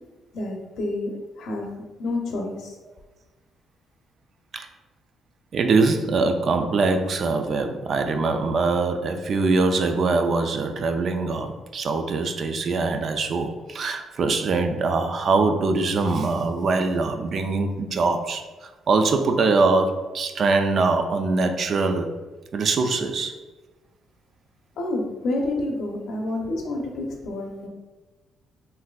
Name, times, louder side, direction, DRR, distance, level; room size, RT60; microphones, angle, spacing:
voice 1, 0.3-1.1 1.4-1.7 2.0-2.8 24.8-27.7, left 2 dB, 75° left, 1 dB, 0.6 m, -28 dB
voice 2, 5.5-22.1 22.5-23.3, right 3 dB, 55° right, 6 dB, 0.3 m, -23 dB
3.8 x 2.6 x 2.3 m, 1.2 s
cardioid pair, 90°, 0 cm